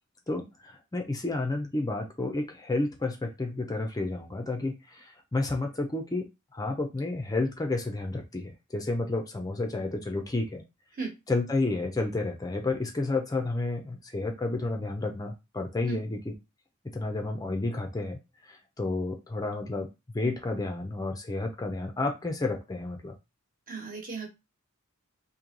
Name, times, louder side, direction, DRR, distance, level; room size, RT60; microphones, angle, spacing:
voice 1, 0.3-6.3 6.5-10.6 11.3-16.3 16.9-18.2 18.5-19.9 20.1-23.1, left 2 dB, 15° left, 4 dB, 0.5 m, -31 dB
voice 2, 23.7-24.3, right 4 dB, 40° right, 1 dB, 1.3 m, -35 dB
3.0 x 2.7 x 3.8 m, 0.25 s
head